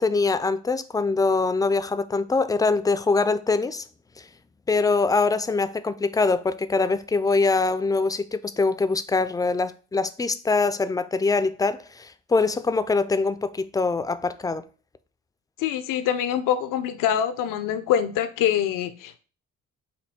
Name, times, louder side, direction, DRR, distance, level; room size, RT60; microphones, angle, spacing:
voice 1, 0.0-3.8 4.2-4.3 4.7-14.6, left 3 dB, 10° left, 0.3 m, -23 dB
voice 2, 15.6-19.2, left 10 dB, 75° left, 0.5 m, -24 dB
4.3 x 2.7 x 4.2 m
cardioid pair, 80°, 32 cm